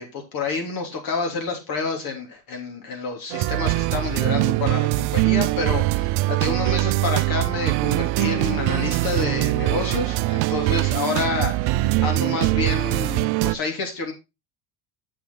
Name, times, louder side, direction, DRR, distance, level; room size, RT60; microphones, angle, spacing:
voice 1, 0.0-14.1, left 4 dB, 55° left, 2 dB, 3.5 m, -29 dB
sound 1, 3.3-13.5, right 19 dB, 65° right, 0.6 m, -22 dB
7.4 x 7.3 x 4.0 m, 0.25 s
supercardioid pair, 110°, 42 cm